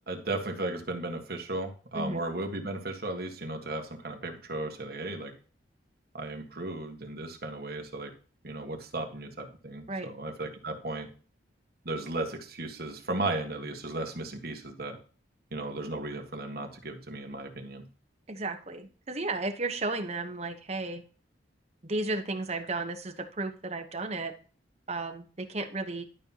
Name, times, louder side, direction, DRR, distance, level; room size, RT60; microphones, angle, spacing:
voice 1, 0.1-5.3 6.1-8.1 8.4-11.1 11.8-15.0 15.5-17.8, right 2 dB, 55° right, 3 dB, 1.6 m, -35 dB
voice 2, 18.3-21.0 21.8-24.3 24.9-26.0, right 2 dB, 35° right, 6 dB, 1.1 m, -33 dB
12.0 x 5.6 x 2.9 m, 0.39 s
head